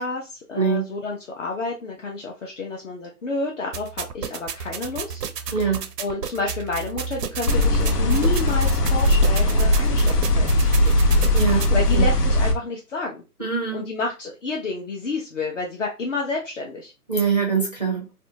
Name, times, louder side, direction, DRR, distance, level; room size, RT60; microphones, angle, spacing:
voice 1, 0.0-10.9 11.7-13.2 13.7-16.9, left 3 dB, 50° left, -1 dB, 0.6 m, -30 dB
voice 2, 0.5-0.9 5.5-5.8 11.3-12.0 13.4-13.8 17.1-18.1, right 6 dB, 30° right, -2 dB, 0.4 m, -23 dB
sound 1, 3.7-11.7, right 6 dB, 85° right, 0.6 m, -32 dB
sound 2, 7.5-12.5, left 1 dB, 85° left, 0.8 m, -19 dB
2.6 x 2.2 x 2.7 m, 0.29 s
hypercardioid pair, 155°, 47 cm